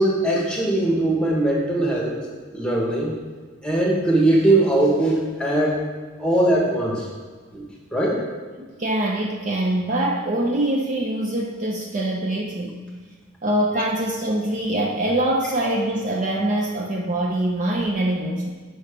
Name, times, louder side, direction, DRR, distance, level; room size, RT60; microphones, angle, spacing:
voice 1, 0.0-2.1 2.5-3.1 3.6-5.7 6.2-7.1 7.5-7.6 7.9-8.2, right 1 dB, 5° left, -3 dB, 1.2 m, -20 dB
voice 2, 8.6-12.8 13.4-18.5, right 1 dB, 35° right, -1 dB, 0.5 m, -24 dB
6.3 x 5.3 x 5.0 m, 1.4 s
head